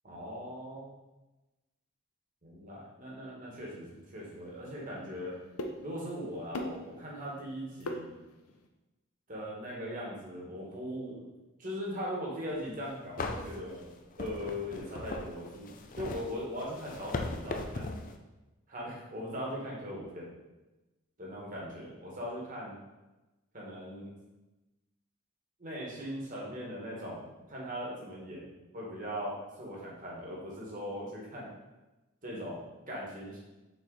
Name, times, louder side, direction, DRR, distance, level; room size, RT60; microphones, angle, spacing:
voice 1, 0.0-0.9 2.4-5.3 5.8-8.1 9.3-11.3 11.6-13.9 14.2-17.9 18.7-20.3 21.2-22.8 23.5-24.2 25.6-31.5 32.2-33.4, equal, 40° right, -4 dB, 1.8 m, -40 dB
sound 1, 3.6-8.7, left 1 dB, 90° left, 0.7 m, -44 dB
sound 2, 12.6-12.7 13.2-18.2, left 3 dB, 40° left, 0.5 m, -39 dB
6.5 x 4.4 x 4.1 m, 1.1 s
head